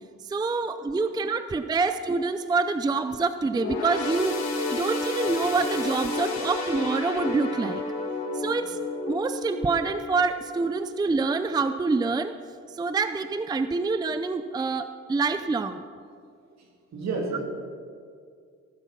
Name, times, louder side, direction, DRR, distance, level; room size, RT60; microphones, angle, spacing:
voice 1, 0.2-4.4 4.7-7.8 8.3-8.8 9.1-12.3 12.7-15.8, right 4 dB, 15° right, 10 dB, 0.4 m, -26 dB
sound 1, 3.5-11.2 11.6-11.8 12.7-12.8, left 3 dB, 65° left, 2.1 m, -31 dB
voice 2, 16.6-17.4, right 3 dB, 65° right, 1 dB, 2.4 m, -32 dB
16.0 x 7.0 x 5.8 m, 2.2 s
cardioid pair, 85°, 29 cm